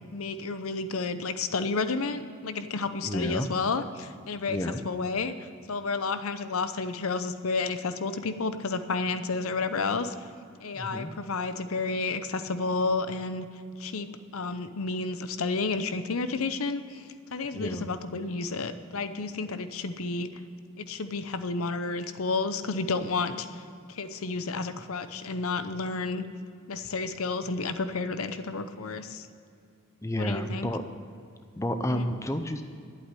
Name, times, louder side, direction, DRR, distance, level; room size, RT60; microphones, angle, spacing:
voice 1, 0.1-4.6 4.8-5.3 5.7-10.1 10.6-13.5 13.8-14.1 14.3-20.3 20.8-23.5 23.9-26.2 26.7-29.3 30.2-30.7 31.9-32.1, left 3 dB, 80° left, 11 dB, 0.7 m, -31 dB
voice 2, 3.0-3.5 4.5-4.8 10.7-11.1 17.5-17.9 30.0-30.8 31.6-32.6, left 1 dB, 15° left, 7 dB, 0.6 m, -30 dB
11.5 x 8.5 x 9.8 m, 2.4 s
head